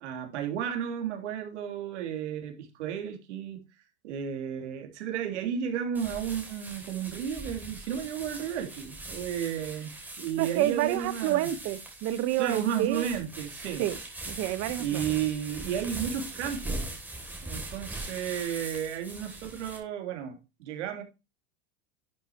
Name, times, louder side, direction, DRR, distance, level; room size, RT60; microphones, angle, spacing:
voice 1, 0.0-3.6 4.0-11.5 12.4-13.8 14.8-16.9 17.4-21.0, right 9 dB, 90° right, 3.3 m, -33 dB
sound 1, 5.9-19.8, right 2 dB, 5° right, 3.1 m, -41 dB
voice 2, 10.4-13.1 13.8-14.0 14.3-15.0, right 14 dB, 45° right, 1.3 m, -29 dB
11.0 x 8.2 x 3.1 m
supercardioid pair, 145°, 34 cm